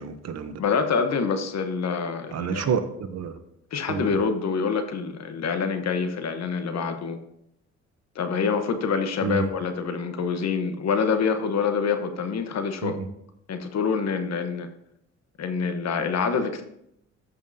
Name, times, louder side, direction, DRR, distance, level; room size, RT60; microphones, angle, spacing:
voice 1, 0.0-0.6 2.3-3.4 3.9-4.1 9.2-9.5 12.8-13.0, right 6 dB, 60° right, 9 dB, 0.9 m, -28 dB
voice 2, 0.6-2.7 3.7-7.2 8.1-13.0 13.5-14.7 15.4-16.6, left 5 dB, 60° left, 7 dB, 1.1 m, -26 dB
13.5 x 5.6 x 2.8 m, 0.77 s
cardioid pair, 90°, 30 cm